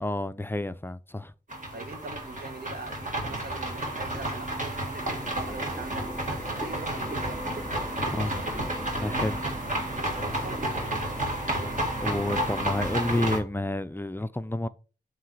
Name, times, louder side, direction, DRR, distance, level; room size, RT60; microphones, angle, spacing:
voice 1, 0.0-1.3 8.2-8.3 9.0-9.4 12.0-14.7, left 1 dB, 15° left, 0.4 m, -29 dB
sound 1, 1.5-13.4, right 1 dB, 50° right, 1.9 m, -31 dB
voice 2, 1.7-7.6 8.0-8.6 10.1-11.1, right 3 dB, 70° right, 1.1 m, -43 dB
sound 2, 5.2-13.3, equal, 25° right, 3.9 m, -41 dB
7.1 x 3.3 x 4.5 m
wide cardioid pair, 80°, 17 cm